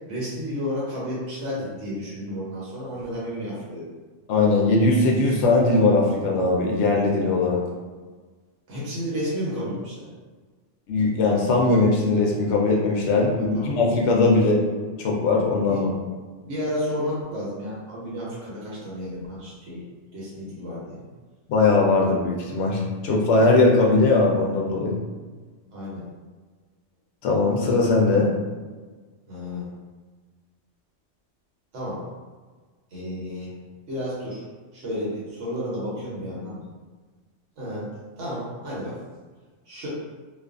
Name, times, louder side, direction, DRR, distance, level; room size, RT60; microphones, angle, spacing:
voice 1, 0.1-3.9 8.7-10.1 13.4-13.8 15.7-15.9 16.4-19.8 20.1-21.0 25.7-26.0 29.3-29.7 31.7-32.0 32.9-33.5 33.9-34.4 34.7-36.6 37.6-37.9 38.2-39.0 39.7-39.9, equal, 80° right, -7 dB, 1.1 m, -32 dB
voice 2, 4.3-7.6 10.9-14.6 15.0-15.9 21.5-25.0 27.2-28.3, left 3 dB, 75° left, -1 dB, 0.8 m, -20 dB
2.5 x 2.4 x 2.4 m, 1.4 s
omnidirectional pair, 1.2 m